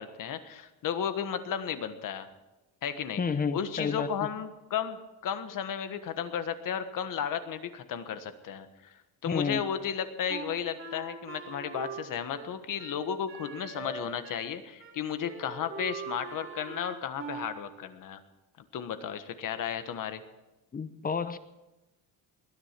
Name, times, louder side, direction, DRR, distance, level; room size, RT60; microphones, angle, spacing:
voice 1, 0.0-2.3 2.8-3.2 3.5-18.2 18.7-20.2, left 8 dB, 55° left, 1.4 m, -34 dB
voice 2, 3.2-4.1 9.3-9.6 20.7-21.4, left 5 dB, 20° left, 0.8 m, -30 dB
Wind instrument woodwind instrument, 10.3-14.5 14.8-15.0 15.3-17.6, right 5 dB, 30° right, 2.6 m, -42 dB
20.5 x 10.5 x 6.0 m
cardioid pair, 140°, 39 cm